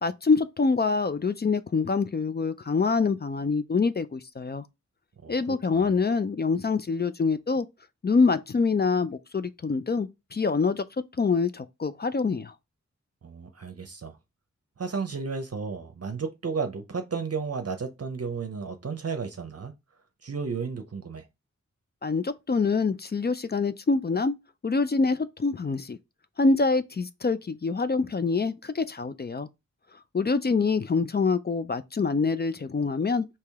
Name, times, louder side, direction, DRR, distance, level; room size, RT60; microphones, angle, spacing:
voice 1, 0.0-4.7 5.3-7.7 8.0-10.8 11.2-12.5 22.0-24.3 24.6-26.0 26.4-29.5 30.1-33.3, left 4 dB, 35° left, 0.4 m, -25 dB
voice 2, 5.2-6.0 13.2-14.2 14.8-19.7 20.2-21.3, right 5 dB, 55° right, 0.7 m, -33 dB
4.7 x 2.9 x 3.5 m
wide cardioid pair, 75°, 30 cm